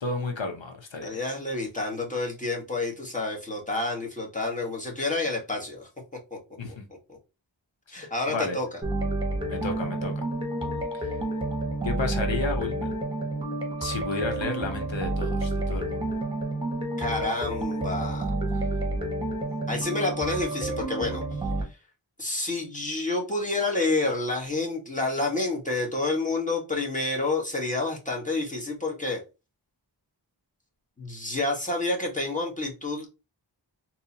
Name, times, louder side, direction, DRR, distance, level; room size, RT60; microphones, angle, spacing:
voice 1, 0.0-1.1 6.6-6.8 7.9-8.6 9.5-10.3 10.9-11.1 11.8-13.0 13.8-16.1, left 3 dB, 90° left, 0.9 m, -32 dB
voice 2, 1.0-5.9 6.3-6.4 7.9-8.7 17.0-18.2 19.7-21.2 22.2-29.2 31.0-33.1, left 2 dB, 15° left, 1.5 m, -29 dB
sound 1, 8.8-21.6, right 2 dB, 10° right, 1.3 m, -29 dB
3.7 x 2.9 x 2.7 m
wide cardioid pair, 40°, 44 cm